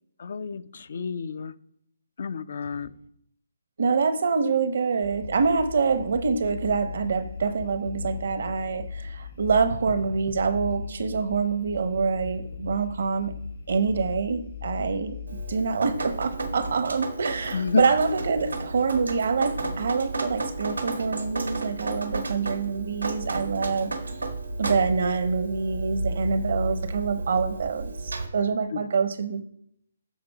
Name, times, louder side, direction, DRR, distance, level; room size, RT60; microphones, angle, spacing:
voice 1, 0.2-1.5 2.2-2.9 17.5-17.9 28.7-28.8, left 5 dB, 60° left, 0.6 m, -30 dB
voice 2, 3.8-13.3 13.7-15.2 15.5-23.9 24.6-29.4, right 5 dB, 60° right, 0.9 m, -26 dB
sound 1, 5.0-15.6, left 5 dB, 80° left, 1.7 m, -38 dB
Drip, 15.3-28.3, right 2 dB, 90° right, 1.5 m, -32 dB
8.6 x 4.0 x 5.8 m
figure-of-eight pair, 145°, 0 cm